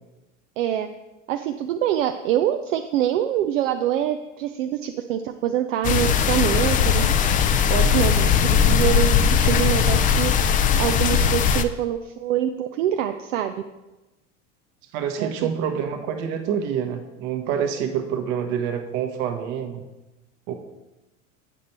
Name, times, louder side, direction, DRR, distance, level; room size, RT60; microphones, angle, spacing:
voice 1, 0.6-0.9 1.3-7.1 7.7-8.2 8.4-10.3 10.8-13.6 15.2-15.3, right 11 dB, 75° right, 6 dB, 0.6 m, -25 dB
sound 1, 5.8-11.6, left 7 dB, 25° left, 0.4 m, -19 dB
voice 2, 7.9-8.3 14.9-19.8 20.5-20.6, right 8 dB, 55° right, 6 dB, 1.2 m, -27 dB
8.5 x 5.3 x 4.3 m, 1.0 s
hypercardioid pair, 95°, 38 cm